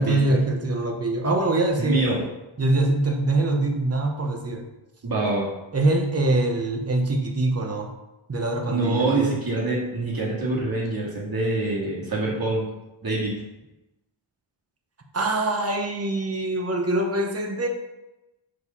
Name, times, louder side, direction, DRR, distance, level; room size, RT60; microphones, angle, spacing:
voice 1, 0.0-2.0 2.6-4.6 5.7-7.9 8.3-9.3 15.1-17.7, right 2 dB, 30° right, 3 dB, 1.1 m, -23 dB
voice 2, 1.8-2.2 5.0-5.5 8.7-12.6 13.0-13.3, right 2 dB, 45° right, -4 dB, 2.4 m, -25 dB
6.5 x 4.9 x 5.4 m, 0.99 s
wide cardioid pair, 140°, 48 cm